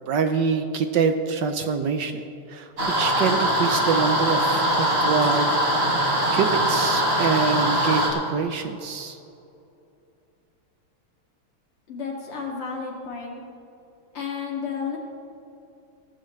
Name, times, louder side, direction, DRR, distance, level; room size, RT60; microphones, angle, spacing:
voice 1, 0.1-2.7 3.0-5.9 6.3-9.2, right 5 dB, 65° right, 7 dB, 1.2 m, -25 dB
sound 1, 2.8-8.1, equal, 40° right, 2.8 m, -22 dB
voice 2, 11.9-13.4 14.1-15.0, left 5 dB, 85° left, -2 dB, 3.2 m, -32 dB
17.5 x 15.0 x 3.2 m, 2.7 s
omnidirectional pair, 2.4 m